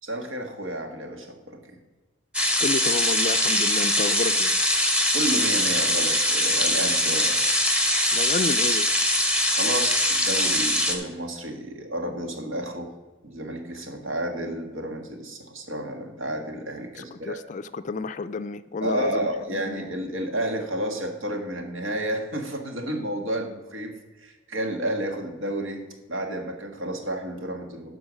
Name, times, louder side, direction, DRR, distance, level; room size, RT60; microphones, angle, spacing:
voice 1, 0.0-1.6 5.1-7.4 9.5-12.9 13.2-17.4 18.8-25.8 26.1-28.0, right 1 dB, 85° right, 3 dB, 1.6 m, -31 dB
sound 1, 2.3-10.9, left 1 dB, 5° right, 0.9 m, -22 dB
voice 2, 2.6-4.6 8.1-8.9 17.0-19.3 19.7-19.8, left 4 dB, 40° left, 12 dB, 0.3 m, -30 dB
12.0 x 4.7 x 6.4 m, 1.2 s
head